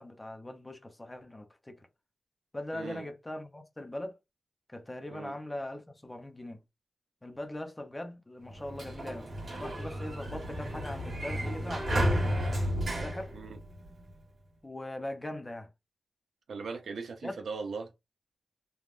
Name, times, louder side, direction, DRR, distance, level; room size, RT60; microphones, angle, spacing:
voice 1, 0.0-1.8 2.5-4.1 4.7-6.6 7.2-9.3 9.6-12.4 13.0-13.3 14.6-15.7 17.2-17.3, left 1 dB, 15° left, 0.6 m, -41 dB
voice 2, 2.7-3.1 5.1-5.4 13.3-13.6 16.5-17.9, right 4 dB, 75° right, 0.6 m, -39 dB
Sliding door, 8.5-14.1, equal, 50° right, 1.4 m, -32 dB
3.4 x 2.3 x 2.4 m
wide cardioid pair, 135°, 0 cm